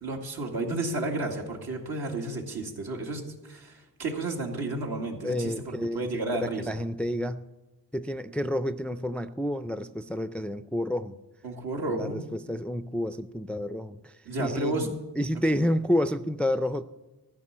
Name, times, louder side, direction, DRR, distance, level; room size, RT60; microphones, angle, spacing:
voice 1, 0.0-6.8 11.4-12.2 14.3-14.9, right 2 dB, 75° right, 0 dB, 2.1 m, -32 dB
voice 2, 5.2-6.1 6.4-7.4 7.9-11.2 11.9-16.8, equal, 5° left, 10 dB, 0.3 m, -30 dB
14.0 x 5.5 x 8.6 m, 1.1 s
cardioid pair, 75°, 38 cm